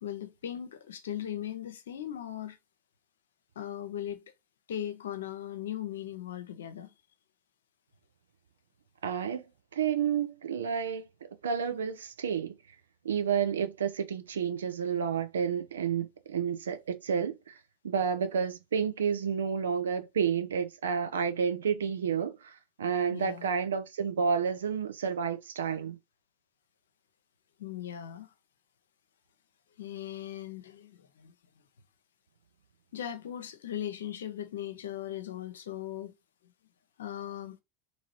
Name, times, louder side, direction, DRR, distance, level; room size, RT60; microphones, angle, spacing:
voice 1, 0.0-2.6 3.6-4.2 4.7-6.9 23.1-23.5 27.6-28.3 29.8-31.3 32.9-36.1 37.0-37.6, left 11 dB, 70° left, 0.5 m, -38 dB
voice 2, 9.0-9.4 9.7-11.1 11.4-12.6 13.0-17.5 17.8-26.0, right 7 dB, 75° right, 0.5 m, -30 dB
2.9 x 2.8 x 2.8 m
figure-of-eight pair, 80°, 0 cm